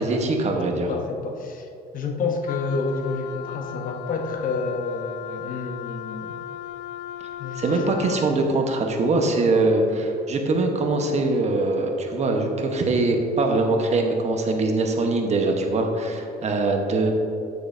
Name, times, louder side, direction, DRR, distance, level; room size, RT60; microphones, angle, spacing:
voice 1, 0.0-0.9 7.6-17.1, right 2 dB, 40° right, 3 dB, 1.1 m, -22 dB
voice 2, 0.7-1.7 1.9-6.4 7.4-8.1, left 4 dB, 55° left, 4 dB, 1.0 m, -29 dB
Wind instrument woodwind instrument, 2.4-8.4, left 11 dB, 80° left, 0.4 m, -36 dB
9.4 x 9.2 x 2.7 m, 2.6 s
cardioid pair, 110°, 17 cm